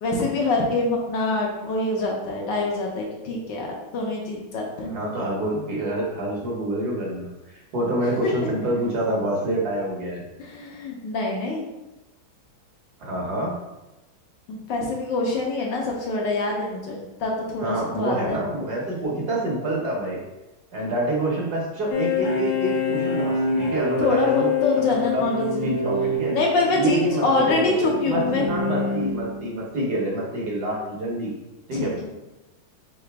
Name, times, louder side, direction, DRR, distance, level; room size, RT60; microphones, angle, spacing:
voice 1, 0.0-4.9 10.4-11.7 14.5-18.4 24.0-25.7 26.3-28.5 31.7-31.9, left 2 dB, 70° left, -1 dB, 1.4 m, -25 dB
voice 2, 4.9-10.2 13.0-13.6 17.6-20.2 20.7-24.5 25.0-25.2 25.6-26.4 26.7-31.3 31.7-32.1, right 1 dB, 60° right, -3 dB, 1.3 m, -27 dB
sound 1, 21.9-29.5, left 3 dB, 85° left, 0.7 m, -26 dB
3.9 x 3.8 x 3.3 m, 0.99 s
omnidirectional pair, 2.2 m